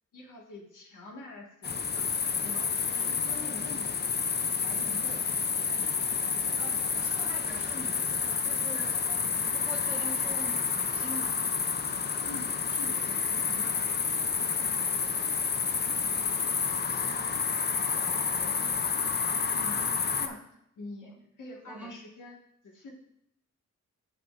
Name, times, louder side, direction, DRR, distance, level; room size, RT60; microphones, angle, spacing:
voice 1, 0.1-2.1 2.4-4.0 4.6-5.2 5.6-7.1 12.2-14.1 19.5-20.5 20.8-21.1 21.4-22.4 22.6-22.9, left 2 dB, 85° left, -1 dB, 1.7 m, -46 dB
sound 1, 1.6-20.3, left 5 dB, 35° left, 0.4 m, -29 dB
voice 2, 6.6-11.5 16.5-17.3 17.9-18.8 21.0-21.2 21.7-22.0, right 1 dB, 5° right, -2 dB, 1.3 m, -45 dB
8.7 x 7.7 x 2.5 m, 0.75 s
wide cardioid pair, 160°, 30 cm